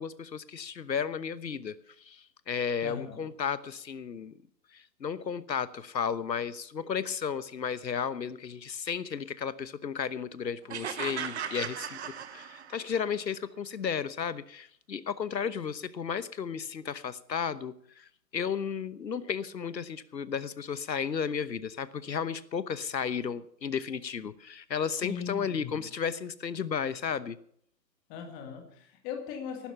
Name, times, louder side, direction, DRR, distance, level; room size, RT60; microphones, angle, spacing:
voice 1, 0.0-4.3 4.7-27.4, left 7 dB, 90° left, 15 dB, 1.2 m, -34 dB
voice 2, 2.8-3.2 25.0-25.8 28.1-29.7, left 7 dB, 15° left, 5 dB, 2.1 m, -39 dB
sound 1, 10.7-13.0, right 8 dB, 40° right, 1.2 m, -37 dB
16.5 x 12.0 x 5.8 m, 0.64 s
hypercardioid pair, 155°, 50 cm